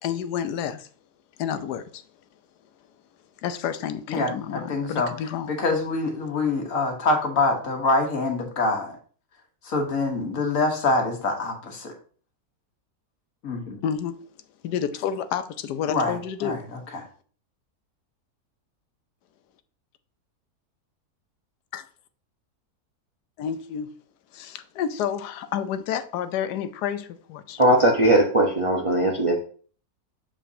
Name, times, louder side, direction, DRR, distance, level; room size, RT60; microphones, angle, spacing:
voice 1, 0.0-0.9 1.4-2.0 3.4-5.5 13.8-14.1 14.6-16.6 21.7-21.9 23.4-23.9 24.3-27.6, left 8 dB, 90° left, 1.2 m, -30 dB
voice 2, 4.1-5.1 5.5-9.0 9.6-11.9 13.4-13.8 15.9-17.0, left 3 dB, 55° left, 1.6 m, -25 dB
voice 3, 27.6-29.4, right 1 dB, 30° right, 0.6 m, -19 dB
7.2 x 5.1 x 2.7 m
omnidirectional pair, 1.7 m